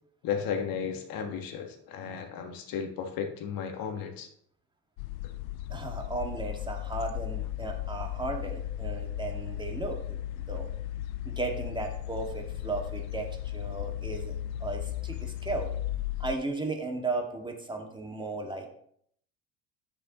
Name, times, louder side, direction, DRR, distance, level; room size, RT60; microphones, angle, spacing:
voice 1, 0.2-4.3, left 7 dB, 55° left, 5 dB, 1.6 m, -34 dB
sound 1, 5.0-16.3, left 13 dB, 75° left, 0.5 m, -36 dB
voice 2, 5.7-10.7 11.3-15.7 16.2-18.7, right 3 dB, 10° right, 2 dB, 2.0 m, -35 dB
9.8 x 6.8 x 3.0 m, 0.65 s
hypercardioid pair, 65°, 41 cm